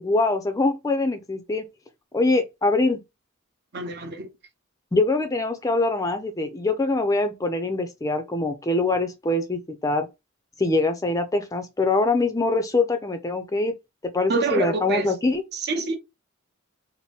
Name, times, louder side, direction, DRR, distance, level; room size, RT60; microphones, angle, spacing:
voice 1, 0.0-1.6 2.1-3.0 4.9-10.1 10.6-13.7 14.0-15.4, left 2 dB, 15° left, 0.4 m, -23 dB
voice 2, 3.7-4.3 14.3-15.1 15.5-16.0, right 4 dB, 50° right, 0.6 m, -26 dB
2.8 x 2.6 x 3.2 m
head